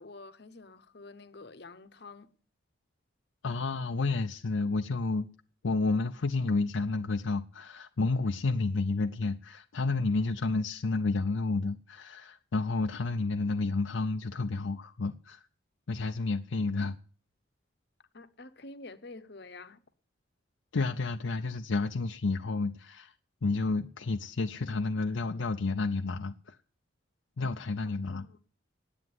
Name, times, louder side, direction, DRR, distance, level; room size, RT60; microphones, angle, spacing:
voice 1, 0.0-2.3 18.1-19.8 28.1-28.4, left 3 dB, 55° left, 0.9 m, -48 dB
voice 2, 3.4-5.3 5.6-15.4 15.9-17.0 20.7-23.1 23.4-26.6 27.4-28.2, left 3 dB, 80° left, 0.6 m, -30 dB
9.7 x 8.6 x 9.4 m
head